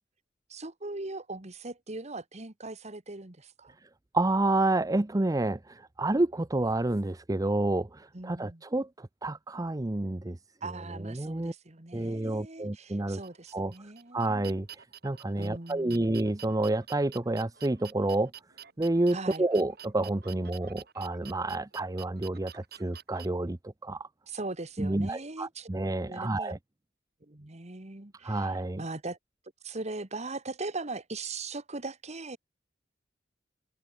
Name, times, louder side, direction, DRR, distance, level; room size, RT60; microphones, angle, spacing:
voice 1, 0.5-3.8 8.1-8.6 10.6-14.4 15.4-16.1 19.1-19.5 24.3-25.7 26.1-26.5 27.2-29.2 29.6-32.4, right 3 dB, 40° right, 1.8 m, -40 dB
voice 2, 4.1-10.4 11.0-11.5 11.9-13.2 13.5-13.7 14.1-18.3 18.8-24.1 24.8-26.6 28.2-28.8, right 2 dB, 20° right, 0.6 m, -29 dB
sound 1, 13.2-23.3, right 10 dB, 60° right, 6.7 m, -49 dB
head